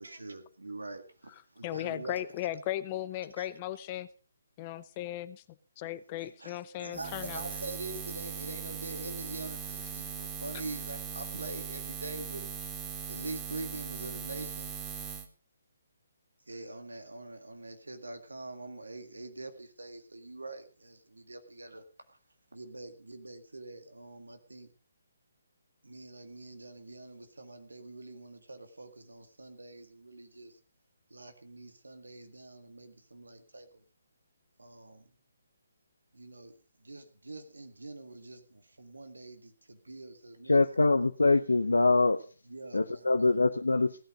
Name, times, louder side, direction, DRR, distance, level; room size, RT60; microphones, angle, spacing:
voice 1, 0.0-2.2 3.4-3.5 6.2-12.5 13.1-14.7 16.5-22.2 22.5-24.7 25.8-30.6 31.1-33.8 34.6-35.1 36.1-40.6 42.5-43.1, right 2 dB, 80° right, 7 dB, 1.9 m, -44 dB
voice 2, 1.6-4.1 4.6-5.4 5.8-7.5, left 13 dB, 30° left, 15 dB, 0.6 m, -36 dB
Buzz, 6.9-15.3, right 7 dB, 15° right, 1.5 m, -40 dB
voice 3, 40.5-42.2 42.7-44.0, left 3 dB, 80° left, 8 dB, 0.7 m, -24 dB
17.0 x 8.9 x 5.1 m, 0.38 s
figure-of-eight pair, 140°, 0 cm